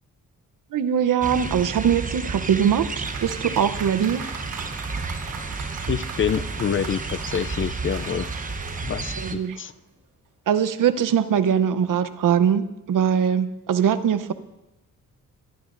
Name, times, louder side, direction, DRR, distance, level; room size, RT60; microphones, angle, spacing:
voice 1, 0.7-4.3 9.2-9.6 10.5-14.3, right 8 dB, 70° right, 12 dB, 0.8 m, -22 dB
sound 1, 1.2-9.4, right 3 dB, 25° right, 0.9 m, -31 dB
Applause, 2.2-9.8, right 5 dB, 85° right, 4.1 m, -40 dB
voice 2, 5.9-8.3 8.8-9.7, left 8 dB, 40° left, 14 dB, 0.4 m, -27 dB
22.5 x 12.0 x 2.6 m, 0.95 s
cardioid pair, 90°, 33 cm